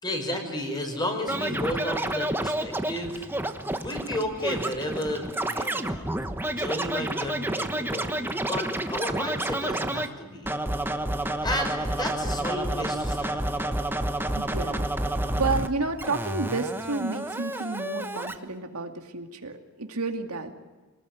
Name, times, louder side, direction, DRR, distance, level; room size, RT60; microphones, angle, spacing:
voice 1, 0.0-3.3 3.8-8.2 8.5-10.5 11.4-13.5, left 1 dB, 20° left, 4 dB, 5.6 m, -32 dB
Scratching (performance technique), 1.3-10.1 10.5-15.7 16.0-18.3, right 1 dB, 10° right, 1.2 m, -30 dB
voice 2, 14.3-14.8 15.3-20.5, right 3 dB, 80° right, 5 dB, 2.4 m, -31 dB
25.0 x 19.5 x 9.4 m, 1.3 s
head